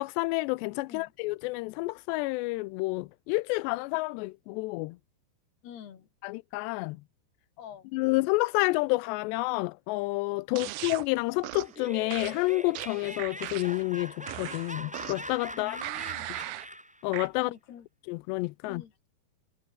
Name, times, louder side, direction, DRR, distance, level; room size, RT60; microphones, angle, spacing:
voice 1, 0.0-5.0 6.2-7.0 7.9-15.8 17.0-17.5 18.1-18.8, left 22 dB, 85° left, 2.7 m, -29 dB
voice 2, 5.6-6.1 7.6-7.9 10.5-10.7 15.5-16.4 17.4-17.9 18.7-18.9, left 9 dB, 65° left, 4.7 m, -47 dB
sound 1, 10.6-11.1 11.4-11.8 12.1-13.8 14.3-15.3 15.8-16.7 17.1-17.3, right 18 dB, 85° right, 2.0 m, -38 dB
Laughter, 11.6-17.0, equal, 5° right, 0.6 m, -42 dB
omnidirectional pair, 5.1 m